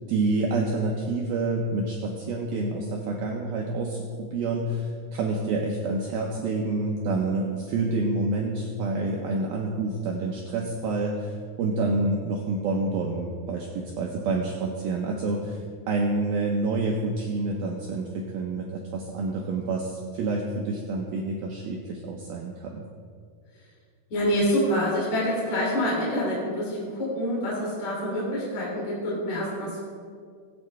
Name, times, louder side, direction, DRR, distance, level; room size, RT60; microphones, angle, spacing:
voice 1, 0.1-15.6 15.9-22.9, right 3 dB, 75° right, -1 dB, 2.3 m, -28 dB
voice 2, 24.1-29.8, equal, 40° left, -6 dB, 3.9 m, -26 dB
20.5 x 8.6 x 3.4 m, 2.1 s
omnidirectional pair, 5.3 m